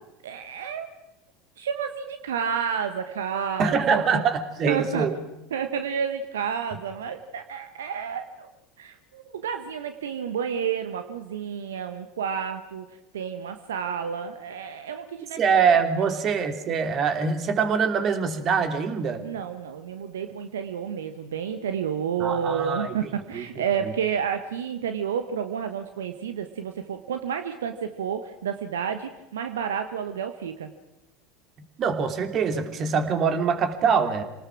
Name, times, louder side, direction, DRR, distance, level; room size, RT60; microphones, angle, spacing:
voice 1, 0.2-0.9 1.6-4.2 4.7-5.1 5.5-8.5 8.8-15.4 16.0-16.2 19.2-30.7, right 7 dB, 75° right, 8 dB, 1.2 m, -30 dB
voice 2, 3.6-5.1 15.4-19.2 22.2-23.0 23.3-23.5 31.8-34.2, right 6 dB, 40° right, 8 dB, 2.8 m, -24 dB
28.0 x 19.0 x 6.1 m, 0.95 s
figure-of-eight pair, 75°, 0 cm